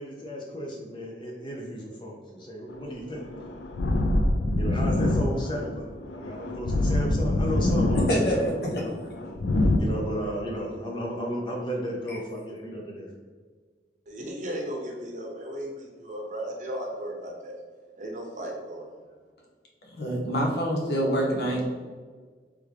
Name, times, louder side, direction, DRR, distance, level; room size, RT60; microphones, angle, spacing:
voice 1, 0.0-3.3 4.6-8.9 9.8-13.1, equal, 25° left, 0 dB, 0.5 m, -34 dB
sound 1, 2.7-9.8, left 1 dB, 80° left, 0.4 m, -25 dB
voice 2, 7.9-8.7 12.1-12.2 20.0-21.6, equal, 65° left, -2 dB, 0.9 m, -26 dB
voice 3, 14.1-17.6 18.0-19.0, right 1 dB, 45° right, 0 dB, 0.7 m, -35 dB
3.5 x 3.3 x 3.3 m, 1.5 s
head